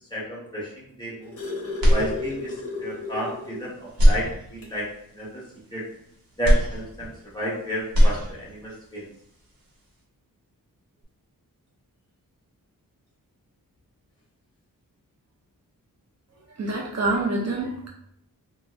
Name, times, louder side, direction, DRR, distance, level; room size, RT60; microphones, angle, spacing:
voice 1, 0.1-1.3 1.9-5.4 5.7-5.8 6.4-9.1, equal, 15° left, -7 dB, 0.9 m, -32 dB
sound 1, 1.0-3.7 4.1-4.2 4.6-4.8 5.9-6.0, left 3 dB, 40° left, 0.9 m, -34 dB
sound 2, 1.8-2.7 3.1-3.2 3.9-4.9 6.4-7.5 7.8-8.7, equal, 85° right, 0.9 m, -21 dB
voice 2, 16.6-17.9, right 2 dB, 50° right, -2 dB, 0.5 m, -26 dB
2.6 x 2.3 x 3.0 m, 0.73 s
wide cardioid pair, 150°, 35 cm